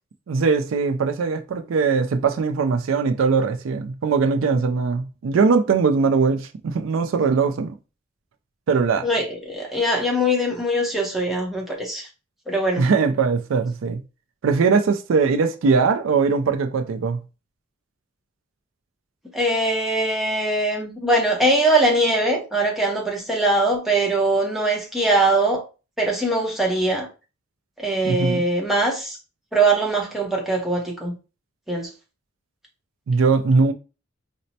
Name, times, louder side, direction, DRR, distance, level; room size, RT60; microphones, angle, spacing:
voice 1, 0.3-7.8 8.7-9.1 12.8-14.0 14.4-17.2 28.0-28.4 33.1-33.7, right 5 dB, 70° right, 0.4 m, -20 dB
voice 2, 9.0-12.1 12.5-12.9 19.3-25.6 26.0-27.1 27.8-29.2 29.5-31.1 31.7-31.9, right 1 dB, ahead, 0.7 m, -21 dB
4.2 x 2.0 x 2.7 m
head